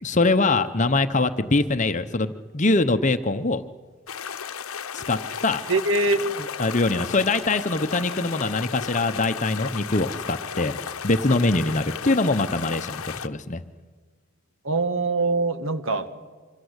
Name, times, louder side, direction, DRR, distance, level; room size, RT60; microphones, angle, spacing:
voice 1, 0.0-3.6 4.9-5.6 6.6-13.6, left 2 dB, 35° left, 9 dB, 0.8 m, -23 dB
sound 1, 4.1-13.3, left 7 dB, 85° left, 0.9 m, -34 dB
voice 2, 5.7-6.2 14.6-16.3, right 3 dB, 70° right, 10 dB, 1.6 m, -23 dB
26.0 x 25.5 x 8.1 m, 1.5 s
head